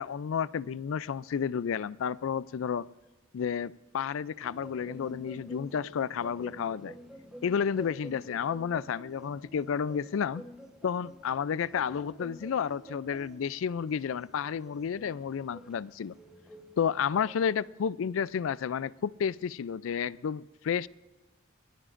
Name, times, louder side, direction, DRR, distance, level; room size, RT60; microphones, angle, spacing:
voice 1, 0.0-2.9 3.3-6.9 7.4-10.4 10.8-16.1 16.8-20.9, left 7 dB, 75° left, 0.4 m, -31 dB
sound 1, 4.4-17.3, equal, 5° right, 1.1 m, -49 dB
22.5 x 18.0 x 2.5 m
head